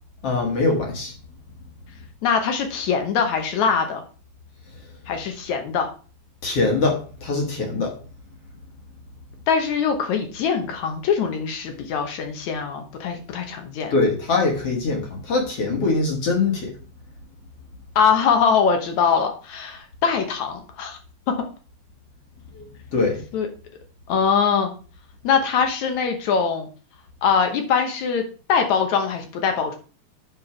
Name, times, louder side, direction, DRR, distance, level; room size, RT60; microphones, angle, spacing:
voice 1, 0.2-1.1 6.4-7.9 13.9-16.7 22.5-22.6 22.9-23.2, left 3 dB, 50° left, 2.1 m, -22 dB
voice 2, 2.2-4.0 5.1-5.9 9.5-13.9 18.0-21.0 23.3-23.5 24.1-24.7 25.2-26.7 27.2-29.8, left 6 dB, 65° left, 2.0 m, -22 dB
8.2 x 4.5 x 5.7 m
omnidirectional pair, 4.4 m